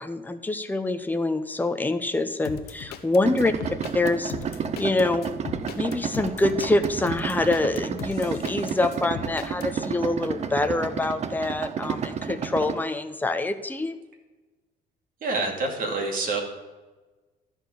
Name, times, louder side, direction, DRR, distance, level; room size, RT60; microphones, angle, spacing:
voice 1, 0.0-3.5 3.9-4.3 4.8-5.3 5.7-14.0, left 2 dB, 10° left, 8 dB, 0.8 m, -25 dB
sound 1, 2.4-9.7, left 8 dB, 75° left, 1.0 m, -38 dB
Idling, 3.2-12.8, right 7 dB, 40° right, 0.7 m, -31 dB
voice 2, 15.2-16.4, right 3 dB, 55° right, 1 dB, 2.6 m, -27 dB
12.5 x 4.4 x 8.4 m, 1.2 s
cardioid pair, 110°, 17 cm